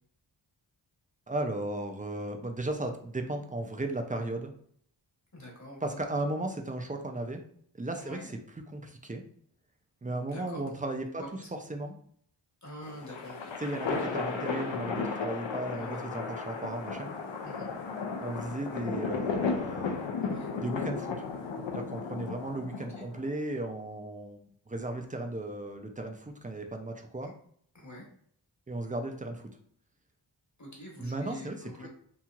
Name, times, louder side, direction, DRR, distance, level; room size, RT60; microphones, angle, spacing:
voice 1, 1.3-4.5 5.8-7.4 7.7-8.4 8.7-9.2 10.0-11.2 11.7-11.9 13.6-17.1 18.2-20.0 20.5-21.2 21.7-24.4 24.7-27.3 28.7-29.5 31.0-31.9, right 2 dB, 20° right, 4 dB, 0.3 m, -35 dB
voice 2, 5.3-6.0 8.0-8.3 10.1-10.6 11.2-11.5 12.6-13.5 15.7-16.0 17.4-17.7 20.2-20.5 23.0-23.1 27.2-27.3 27.7-28.1 30.6-31.9, left 1 dB, 40° left, -2 dB, 1.1 m, -45 dB
sound 1, 12.8-23.3, left 5 dB, 80° left, 0.5 m, -34 dB
2.9 x 2.7 x 2.3 m, 0.62 s
wide cardioid pair, 70°, 45 cm